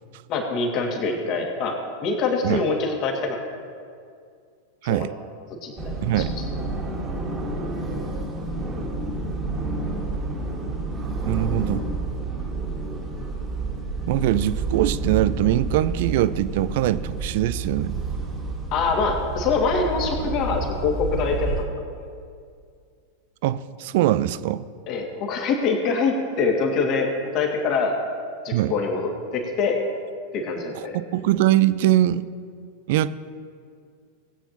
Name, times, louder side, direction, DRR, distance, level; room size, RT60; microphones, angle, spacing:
voice 1, 0.3-3.4 4.8-5.1 5.6-5.7 6.2-6.3 18.7-21.8 24.9-28.0 28.4-29.8 30.3-31.0, left 4 dB, 40° left, 1 dB, 2.1 m, -24 dB
sound 1, 5.8-21.6, right 3 dB, 20° right, 1.9 m, -29 dB
voice 2, 6.0-6.3 11.2-11.8 14.1-18.0 23.4-24.7 28.5-28.7 31.1-32.3 32.9-33.2, right 13 dB, 50° right, 16 dB, 0.4 m, -22 dB
19.5 x 8.9 x 2.9 m, 2.3 s
figure-of-eight pair, 90°, 0 cm